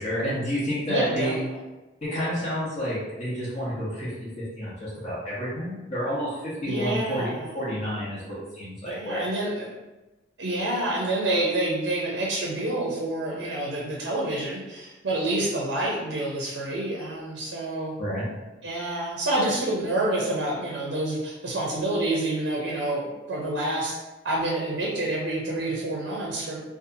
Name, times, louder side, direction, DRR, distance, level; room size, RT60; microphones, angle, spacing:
voice 1, 0.0-1.4 2.0-4.1 4.4-9.2 18.0-18.3, equal, 40° left, -9 dB, 0.8 m, -30 dB
voice 2, 0.9-1.3 6.7-7.6 8.8-9.7 10.4-17.9 18.6-24.0 24.2-26.6, right 1 dB, 75° right, -3 dB, 0.5 m, -28 dB
2.7 x 2.3 x 2.6 m, 1.1 s
head